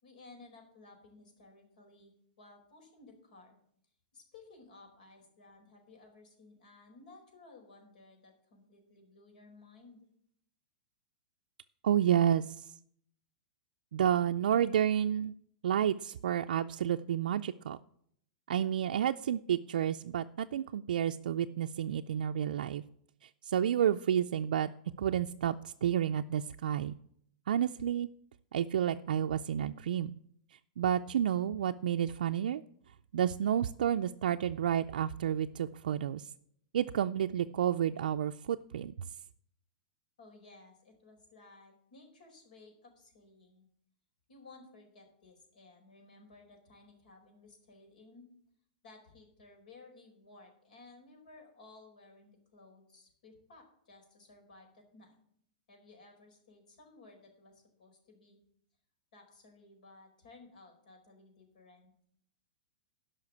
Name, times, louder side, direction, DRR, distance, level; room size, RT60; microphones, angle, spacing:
voice 1, 0.0-3.6 4.1-10.1 40.2-43.7 44.3-48.3 48.8-55.2 55.7-58.4 59.1-61.9, left 3 dB, 70° left, 3 dB, 4.5 m, -57 dB
voice 2, 11.8-12.7 13.9-15.3 15.6-17.8 18.5-22.8 23.2-24.7 25.0-27.0 27.5-28.1 28.5-30.2 30.5-32.6 33.1-36.3 36.7-38.9, right 10 dB, 85° right, 6 dB, 0.4 m, -30 dB
11.5 x 5.7 x 8.3 m, 0.68 s
supercardioid pair, 165°, 5 cm